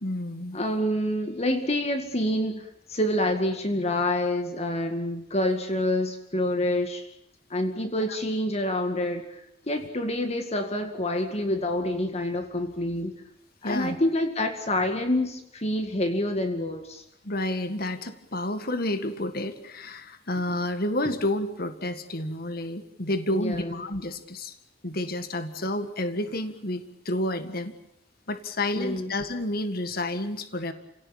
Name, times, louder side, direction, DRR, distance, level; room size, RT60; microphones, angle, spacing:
voice 1, 0.0-0.6 13.6-14.0 17.2-24.5 24.8-27.8 28.3-30.7, left 1 dB, 55° left, 10 dB, 1.8 m, -30 dB
voice 2, 0.5-7.1 7.5-9.4 9.7-13.1 13.6-17.0 23.3-23.8 28.8-29.1, left 1 dB, 35° left, 6 dB, 2.1 m, -27 dB
30.0 x 17.5 x 8.8 m, 0.79 s
head